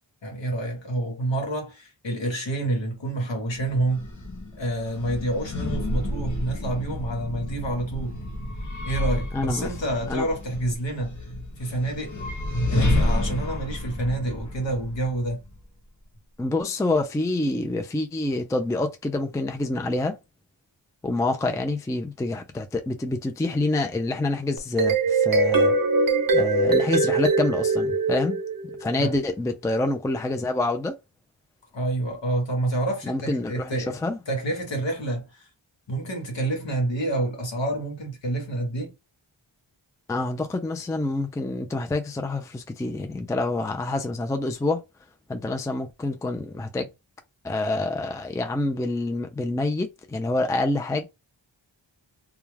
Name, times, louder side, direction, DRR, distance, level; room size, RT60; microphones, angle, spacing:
voice 1, 0.2-4.1 4.5-8.2 8.8-11.1 11.6-12.2 12.7-15.4 29.0-29.1 31.7-33.9 34.3-35.5 35.9-38.9, right 1 dB, 65° left, 1.1 m, -28 dB
sound 1, 3.5-15.6, left 1 dB, 40° left, 0.8 m, -30 dB
voice 2, 9.3-9.7 10.1-10.3 16.4-20.2 21.0-25.8 26.3-28.4 28.8-31.0 33.0-34.2 40.1-44.8 45.3-46.9 47.4-51.1, left 2 dB, 10° left, 0.3 m, -27 dB
sound 2, 24.6-28.9, right 3 dB, 45° right, 0.6 m, -22 dB
2.3 x 2.3 x 3.2 m
wide cardioid pair, 55°, 47 cm